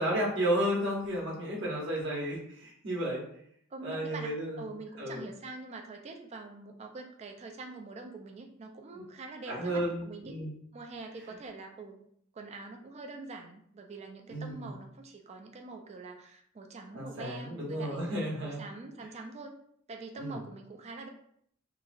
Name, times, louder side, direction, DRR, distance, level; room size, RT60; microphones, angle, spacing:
voice 1, 0.0-3.2 3.8-4.6 5.0-5.2 8.9-9.0 9.5-10.6 14.3-14.8 16.9-18.6 20.2-20.4, right 1 dB, 60° right, -4 dB, 0.9 m, -33 dB
voice 2, 3.7-4.3 4.6-10.4 10.7-12.0 12.3-18.0 18.4-19.5 19.9-21.1, right 3 dB, 30° right, 4 dB, 0.3 m, -44 dB
2.9 x 2.4 x 2.5 m, 0.68 s
head